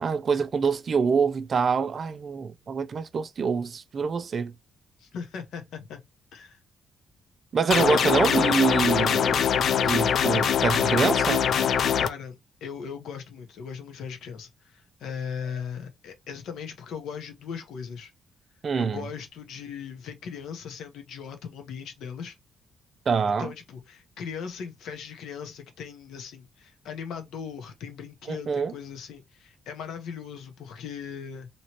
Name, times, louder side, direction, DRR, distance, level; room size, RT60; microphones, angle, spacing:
voice 1, 0.0-4.5 7.5-9.4 9.8-11.5 18.6-19.0 23.1-23.5 28.3-28.7, right 5 dB, 45° right, 0.4 m, -25 dB
voice 2, 5.0-6.0 6.3-6.6 12.0-12.4 12.6-18.1 18.8-22.4 23.4-31.5, left 7 dB, 80° left, 0.9 m, -38 dB
sound 1, 7.7-12.1, left 8 dB, 60° left, 0.3 m, -23 dB
3.0 x 2.9 x 2.8 m
cardioid pair, 130°, 0 cm